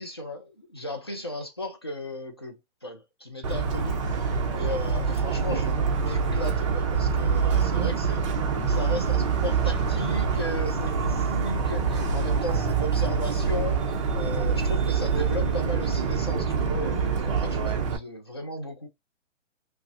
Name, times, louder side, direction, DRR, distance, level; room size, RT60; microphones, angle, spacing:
voice 1, 0.0-8.4 8.7-18.9, left 1 dB, 20° left, 0.3 m, -36 dB
Motor vehicle (road) / Siren, 3.4-18.0, right 5 dB, 25° right, 0.6 m, -25 dB
5.3 x 2.0 x 2.6 m
hypercardioid pair, 155°, 38 cm